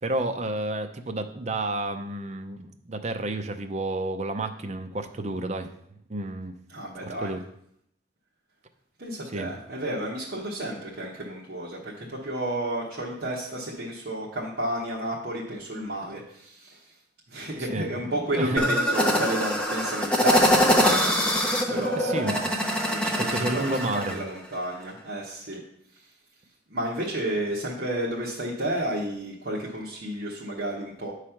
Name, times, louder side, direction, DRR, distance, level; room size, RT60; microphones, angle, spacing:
voice 1, 0.0-5.7 6.1-6.5 7.2-7.4 9.3-9.5 17.6-18.7 21.7-22.4 23.2-24.2, right 2 dB, 35° right, 6 dB, 0.5 m, -31 dB
voice 2, 6.7-7.3 9.0-16.8 17.3-21.1 21.7-22.4 22.8-23.8 24.1-25.6 26.7-31.1, right 1 dB, 55° right, -7 dB, 1.2 m, -31 dB
sound 1, 18.6-24.2, equal, 5° left, 0.7 m, -23 dB
8.7 x 3.2 x 5.7 m, 0.71 s
head